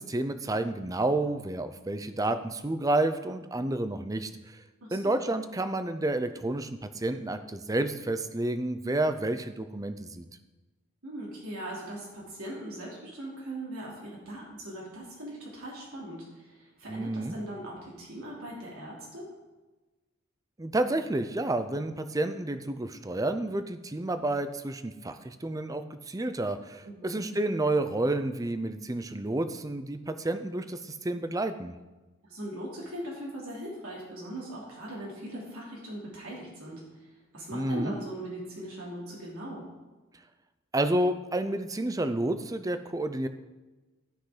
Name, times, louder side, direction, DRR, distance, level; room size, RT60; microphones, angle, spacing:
voice 1, 0.0-4.6 4.9-10.3 16.9-17.4 20.6-31.8 37.5-37.9 40.7-43.3, right 2 dB, 15° right, 10 dB, 0.5 m, -30 dB
voice 2, 11.0-19.3 26.8-27.2 32.2-39.6, right 1 dB, 85° right, -5 dB, 2.9 m, -40 dB
13.0 x 5.9 x 5.0 m, 1.2 s
head